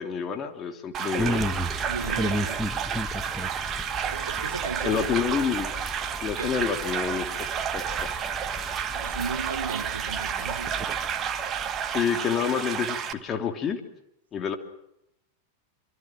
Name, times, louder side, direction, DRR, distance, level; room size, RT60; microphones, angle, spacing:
voice 1, 0.0-1.5 4.8-5.7 6.2-8.1 11.9-13.8 14.3-14.6, left 7 dB, 25° left, 3.1 m, -28 dB
sound 1, 0.9-13.1, right 8 dB, 30° right, 1.6 m, -31 dB
sound 2, 1.2-12.0, equal, ahead, 1.6 m, -35 dB
voice 2, 1.9-2.7 3.9-5.1 6.4-6.7 8.9-10.8, right 5 dB, 70° right, 1.4 m, -35 dB
26.5 x 26.0 x 6.3 m
figure-of-eight pair, 90°, 0 cm